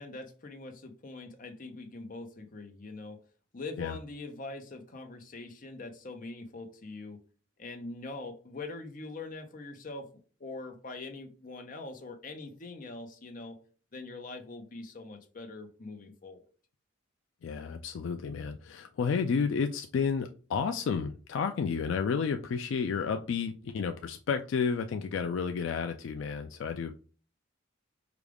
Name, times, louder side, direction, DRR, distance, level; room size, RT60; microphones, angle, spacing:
voice 1, 0.0-3.2 3.5-7.2 7.6-10.1 10.4-13.6 13.9-16.4, left 3 dB, 40° left, 5 dB, 0.7 m, -43 dB
voice 2, 17.4-27.0, left 6 dB, 65° left, 6 dB, 0.3 m, -31 dB
4.8 x 2.3 x 3.4 m, 0.39 s
head